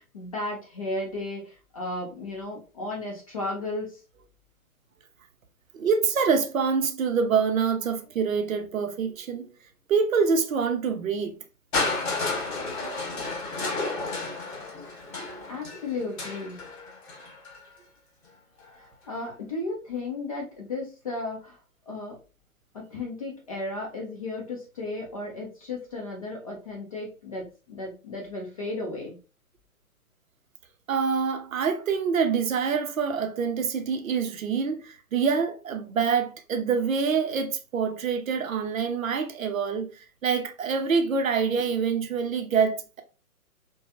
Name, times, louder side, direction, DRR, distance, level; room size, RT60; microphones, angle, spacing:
voice 1, 0.0-4.0 15.2-16.6 18.8-21.6 21.9-22.2 22.7-29.1, left 2 dB, 25° left, 0.5 m, -34 dB
voice 2, 5.7-9.5 9.9-11.4 30.9-43.0, right 5 dB, 65° right, 0.6 m, -26 dB
Crushing, 11.7-17.6 18.6-18.7, left 3 dB, 45° left, 1.5 m, -32 dB
3.3 x 2.1 x 2.4 m
figure-of-eight pair, 130°, 44 cm